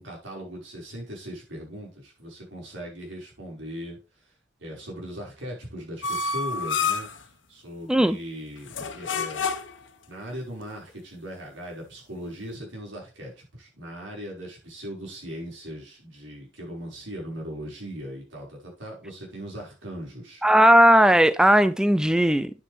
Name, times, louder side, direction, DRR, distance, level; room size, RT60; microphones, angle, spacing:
voice 1, 0.0-4.0 4.6-7.1 7.5-9.4 10.1-20.4, equal, 85° right, 5.4 m, -39 dB
sound 1, 6.0-7.2 8.7-9.9, left 5 dB, 80° left, 1.2 m, -28 dB
voice 2, 20.4-22.5, equal, 5° right, 0.4 m, -17 dB
9.3 x 8.2 x 3.4 m
head